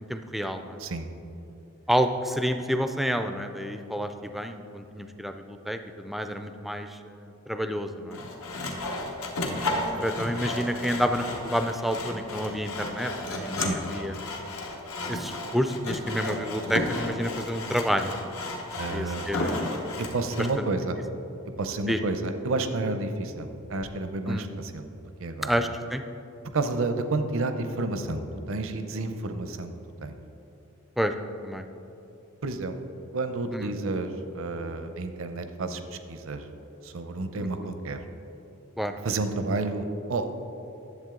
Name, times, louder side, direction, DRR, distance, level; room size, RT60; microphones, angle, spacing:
voice 1, 0.1-0.8 1.9-8.2 8.5-8.9 10.0-14.2 15.1-18.2 18.9-19.7 20.6-20.7 21.9-22.0 24.3-24.5 25.4-26.0 31.0-31.1 31.4-31.6 33.5-33.7 37.4-37.5 38.8-39.0, equal, ahead, 7 dB, 0.3 m, -29 dB
Sawing, 8.1-20.6, left 2 dB, 85° left, 1.1 m, -33 dB
voice 2, 18.8-19.3 20.0-21.0 21.6-24.9 25.2-25.5 26.5-28.2 28.5-29.7 30.0-30.2 32.4-32.8 33.1-35.8 36.1-36.4 36.8-38.0 39.0-40.3, right 3 dB, 70° right, 8 dB, 0.6 m, -30 dB
10.5 x 7.3 x 3.7 m, 2.9 s
head